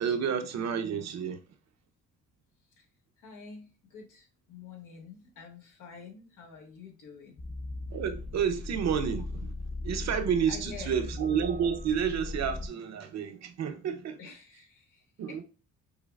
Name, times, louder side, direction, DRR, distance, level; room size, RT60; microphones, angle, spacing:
voice 1, 0.0-1.4 7.9-9.5 9.8-14.2 15.2-15.4, right 7 dB, 60° right, 0.7 m, -30 dB
voice 2, 3.2-7.4 10.5-11.1 14.2-15.4, left 5 dB, 90° left, 1.4 m, -48 dB
sound 1, 7.4-12.7, left 2 dB, 35° left, 0.6 m, -38 dB
5.4 x 2.0 x 2.3 m
cardioid pair, 90°, 30 cm